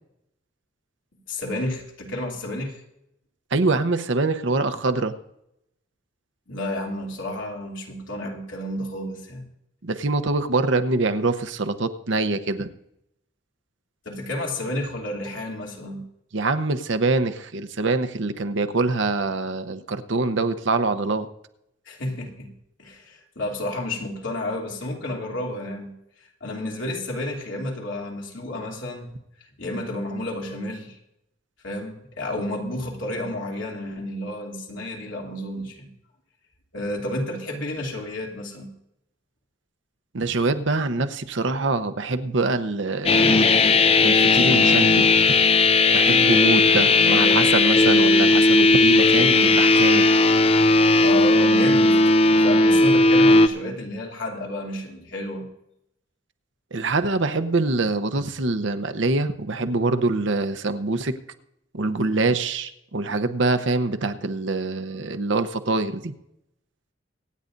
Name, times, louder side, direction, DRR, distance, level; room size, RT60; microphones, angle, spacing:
voice 1, 1.3-2.8 6.5-9.4 14.0-16.1 21.9-22.5 22.8-25.9 26.4-29.1 29.6-31.0 31.6-35.9 36.7-38.7 51.0-55.5, left 1 dB, 80° left, -1 dB, 2.8 m, -31 dB
voice 2, 3.5-5.1 9.8-12.7 16.3-21.3 40.1-43.6 44.0-45.3 45.9-50.1 56.7-61.2 61.7-66.1, right 3 dB, 70° right, 8 dB, 0.8 m, -24 dB
sound 1, 43.1-53.5, left 3 dB, 30° left, 0.5 m, -16 dB
25.0 x 9.5 x 2.6 m, 0.80 s
head